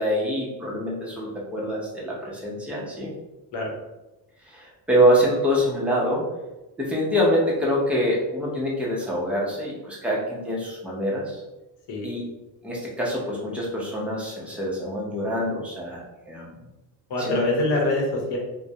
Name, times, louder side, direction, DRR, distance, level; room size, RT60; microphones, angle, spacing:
voice 1, 0.0-3.1 4.5-6.3 6.8-11.4 12.0-12.2 12.6-16.6 17.2-17.4, equal, 5° right, -5 dB, 0.4 m, -25 dB
voice 2, 17.1-18.4, left 2 dB, 90° left, 0 dB, 0.8 m, -24 dB
2.3 x 2.0 x 2.6 m, 1.0 s
cardioid pair, 145°, 41 cm